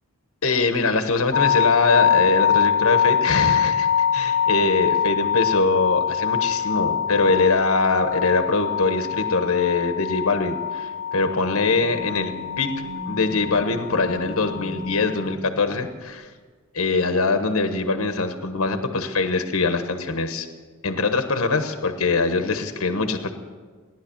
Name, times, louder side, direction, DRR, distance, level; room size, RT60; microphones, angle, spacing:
voice 1, 0.4-12.7 13.1-16.3 16.7-20.5 20.8-23.3, left 3 dB, 75° left, 7 dB, 1.2 m, -23 dB
sound 1, 1.3-15.3, left 8 dB, 35° left, 1.2 m, -24 dB
sound 2, 11.2-16.0, left 1 dB, 85° right, 3.4 m, -40 dB
18.0 x 11.0 x 7.1 m, 1.5 s
head